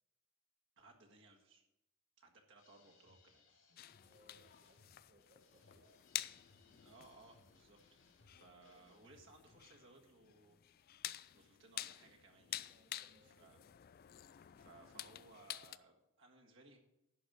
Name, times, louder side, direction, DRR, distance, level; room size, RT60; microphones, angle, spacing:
voice 1, 0.8-1.6 2.2-3.4 6.8-7.8 8.3-10.6 11.3-12.7 13.2-13.6 14.2-16.8, right 2 dB, 65° right, 1 dB, 1.7 m, -63 dB
sound 1, 2.6-9.6, left 2 dB, 70° left, 3.2 m, -70 dB
sound 2, 3.8-15.8, left 13 dB, 45° left, 0.3 m, -50 dB
voice 2, 4.0-6.1 6.5-6.8 12.6-13.8 14.5-14.7, equal, 40° right, 1 dB, 1.2 m, -70 dB
11.0 x 5.2 x 7.7 m, 0.89 s
head